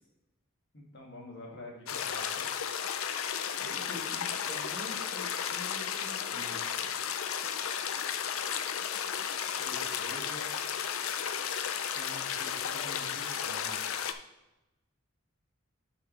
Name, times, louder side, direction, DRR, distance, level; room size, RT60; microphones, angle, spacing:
voice 1, 0.7-2.5 9.6-10.5 11.9-14.0, left 1 dB, 60° left, -2 dB, 2.2 m, -47 dB
sound 1, 1.9-14.1, left 8 dB, 90° left, 0.5 m, -34 dB
voice 2, 3.6-6.9, left 2 dB, 30° left, -8 dB, 1.6 m, -46 dB
9.1 x 5.5 x 3.3 m, 0.97 s
head